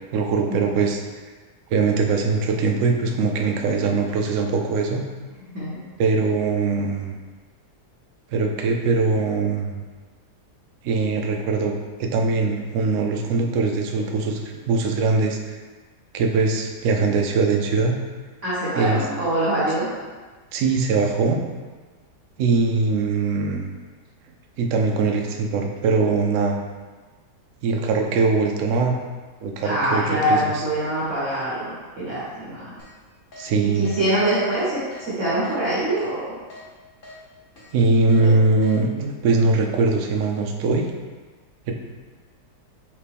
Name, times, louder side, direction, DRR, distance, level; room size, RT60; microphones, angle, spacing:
voice 1, 0.1-1.0 1.7-5.0 6.0-7.1 8.3-9.8 10.8-11.7 12.0-15.4 16.1-17.9 18.7-19.0 20.5-21.4 22.4-23.7 24.6-26.6 27.6-29.0 29.4-30.0 30.3-30.4 33.4-33.9 37.7-40.9 41.7-41.8, right 3 dB, 70° right, 2 dB, 0.7 m, -21 dB
voice 2, 5.5-5.8 18.4-19.9 29.6-32.8 33.6-36.3 38.2-38.3, right 1 dB, 50° right, -10 dB, 1.5 m, -24 dB
Keyboard (musical), 32.8-32.9 33.3-33.5 33.8-34.0 34.4-34.5 34.9-35.0 35.4-35.6 36.0-36.1 36.5-36.6 37.0-37.2 37.6-37.7 38.1-38.2 38.6-38.8, left 2 dB, 40° left, 0.9 m, -43 dB
4.4 x 2.9 x 3.4 m, 1.4 s
omnidirectional pair, 1.8 m